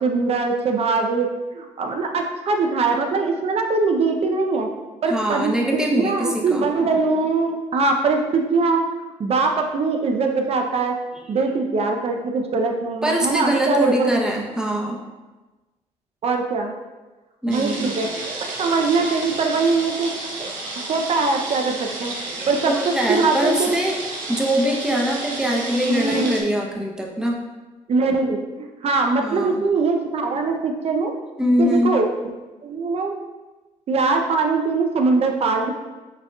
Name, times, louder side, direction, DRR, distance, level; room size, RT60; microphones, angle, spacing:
voice 1, 0.0-4.7 5.0-8.9 9.2-11.0 11.3-14.2 16.2-16.7 17.5-18.1 18.4-20.1 20.8-22.1 22.5-23.8 25.8-26.5 27.9-28.4 28.8-31.1 31.6-32.1 32.6-33.1 33.9-35.7, right 4 dB, 50° right, 3 dB, 0.6 m, -22 dB
voice 2, 5.1-6.7 11.1-11.4 13.0-15.0 17.4-17.9 22.3-24.0 24.3-27.4 29.2-29.6 31.4-32.0, equal, 5° right, -1 dB, 0.8 m, -23 dB
sound 1, 17.5-26.4, right 2 dB, 75° right, 1.0 m, -31 dB
6.8 x 2.9 x 2.3 m, 1.2 s
cardioid pair, 90°, 13 cm